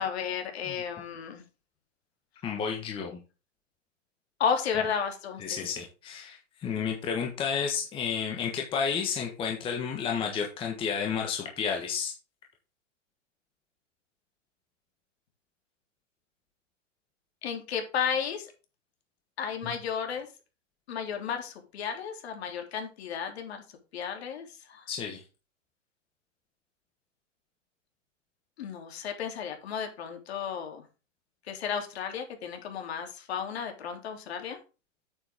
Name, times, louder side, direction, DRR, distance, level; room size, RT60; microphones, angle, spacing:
voice 1, 0.0-1.4 4.4-5.6 17.4-18.5 19.4-20.3 20.9-23.6 23.9-24.8 28.6-30.8 31.5-34.6, left 7 dB, 55° left, 4 dB, 3.3 m, -33 dB
voice 2, 2.4-3.2 5.4-12.1 19.6-19.8 24.9-25.2, left 6 dB, 15° left, 1 dB, 1.4 m, -31 dB
8.9 x 8.0 x 3.7 m, 0.31 s
hypercardioid pair, 155°, 38 cm